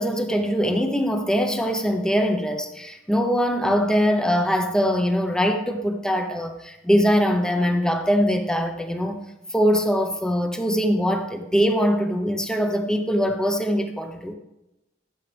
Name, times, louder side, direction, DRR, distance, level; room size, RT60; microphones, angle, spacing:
voice 1, 0.0-14.3, equal, 5° left, 5 dB, 0.9 m, -22 dB
14.0 x 7.4 x 3.4 m, 0.93 s
head